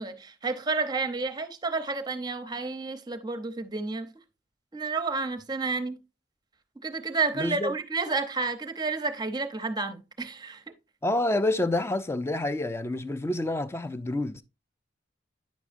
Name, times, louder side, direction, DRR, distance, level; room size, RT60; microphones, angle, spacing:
voice 1, 0.0-4.1 4.7-6.0 6.8-10.6, right 4 dB, 20° right, 0.7 m, -30 dB
voice 2, 7.3-7.7 11.0-14.4, left 2 dB, 15° left, 0.4 m, -28 dB
9.2 x 6.1 x 2.5 m
head